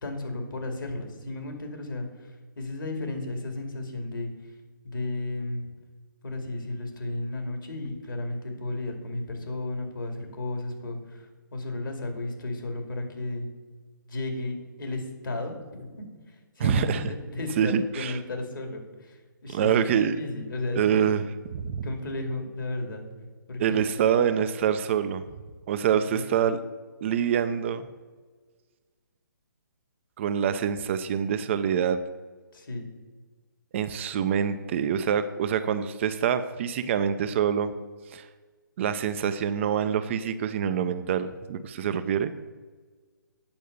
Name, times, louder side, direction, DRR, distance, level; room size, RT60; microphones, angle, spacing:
voice 1, 0.0-4.3 4.8-5.7 6.2-13.5 14.1-21.1 21.8-23.0 23.5-23.8 26.1-26.5 32.5-32.9, left 2 dB, 70° left, 4 dB, 2.4 m, -34 dB
voice 2, 16.6-17.0 17.6-18.1 19.5-20.2 20.8-21.2 21.5-21.9 23.6-25.2 25.7-26.6 27.0-27.9 30.2-32.0 33.7-37.7 38.1-38.3 38.8-42.3, right 8 dB, 35° right, 11 dB, 0.5 m, -25 dB
8.7 x 5.4 x 6.7 m, 1.4 s
figure-of-eight pair, 140°, 11 cm